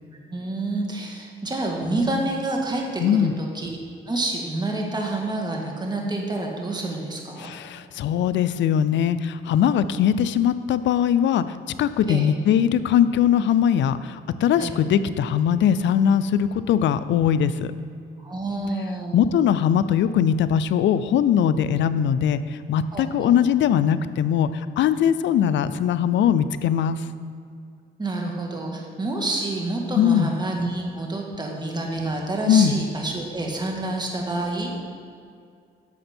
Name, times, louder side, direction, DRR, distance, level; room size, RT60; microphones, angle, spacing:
voice 1, 0.3-3.8 4.1-7.5 12.1-12.3 14.6-14.8 18.2-19.2 22.9-23.3 28.0-34.8, right 2 dB, 20° right, 0 dB, 1.8 m, -28 dB
voice 2, 3.0-3.5 7.4-11.4 11.8-17.7 19.1-27.0 29.9-30.3 32.5-32.8, left 9 dB, 70° left, 13 dB, 0.5 m, -21 dB
10.5 x 6.7 x 4.4 m, 2.3 s
cardioid pair, 90°, 20 cm